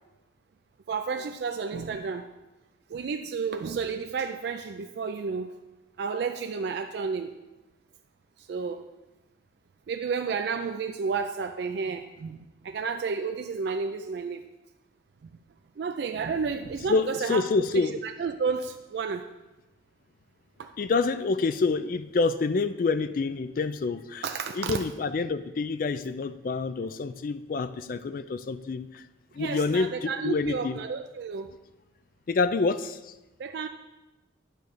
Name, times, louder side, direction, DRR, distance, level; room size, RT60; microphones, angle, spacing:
voice 1, 0.9-2.3 2.9-5.5 6.0-7.3 8.4-8.8 9.9-14.5 15.8-17.4 17.7-19.3 20.6-20.7 24.2-24.8 29.4-31.5 33.4-33.7, right 5 dB, 55° right, 6 dB, 0.3 m, -31 dB
voice 2, 16.9-18.0 20.8-24.2 24.6-28.9 29.4-30.7 32.3-33.0, left 4 dB, 45° left, 12 dB, 0.3 m, -27 dB
9.1 x 3.2 x 6.6 m, 1.1 s
head